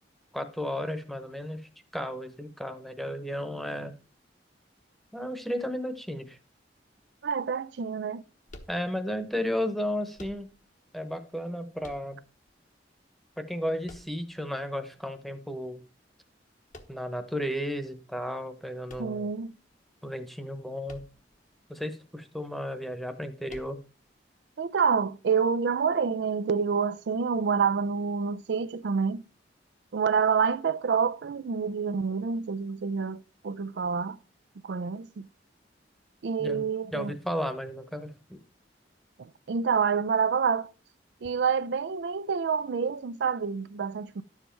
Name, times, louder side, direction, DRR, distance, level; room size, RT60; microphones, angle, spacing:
voice 1, 0.3-1.6 1.9-3.9 5.1-6.4 8.7-10.5 10.9-12.2 13.4-15.8 16.9-19.3 20.0-21.0 21.7-23.8 36.4-36.6 36.9-38.4, equal, ahead, 1.0 m, -33 dB
voice 2, 7.2-8.2 19.0-19.5 24.6-29.2 29.9-34.2 34.6-35.3 36.2-37.1 39.2-40.7 41.2-44.2, right 6 dB, 70° right, 0.4 m, -27 dB
sound 1, 8.5-9.3 10.1-10.8 11.8-12.5 13.8-14.6 16.7-17.3 18.8-19.7 20.8-21.4 21.7-21.8 23.5-24.1, left 2 dB, 45° left, 1.1 m, -50 dB
11.0 x 7.3 x 4.5 m
head